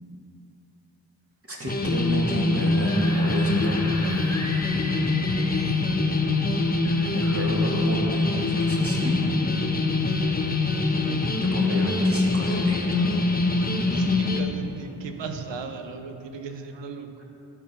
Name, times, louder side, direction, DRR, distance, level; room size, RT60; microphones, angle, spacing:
voice 1, 1.5-3.9 7.1-9.3 11.4-13.1 17.2-17.3, equal, 30° right, -3 dB, 2.1 m, -31 dB
sound 1, 1.7-14.4, left 3 dB, 20° left, 0.9 m, -24 dB
Screaming / Screech, 2.6-5.9 6.8-7.9, left 1 dB, 40° left, 1.3 m, -39 dB
voice 2, 13.7-17.2, right 5 dB, 75° right, 6 dB, 0.8 m, -37 dB
12.0 x 4.1 x 5.5 m, 2.8 s
cardioid pair, 45°, 44 cm